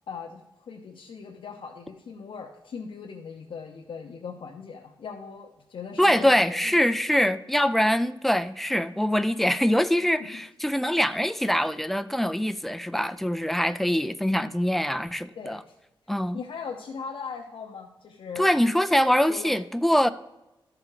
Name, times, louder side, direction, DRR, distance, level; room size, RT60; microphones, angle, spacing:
voice 1, 0.1-6.8 10.2-10.4 15.4-15.7 16.3-18.5 19.3-19.5, left 6 dB, 75° left, 0.8 m, -39 dB
voice 2, 6.0-15.6 16.1-16.4 18.4-20.1, equal, ahead, 0.3 m, -23 dB
13.0 x 4.9 x 4.9 m
wide cardioid pair, 175°, 9 cm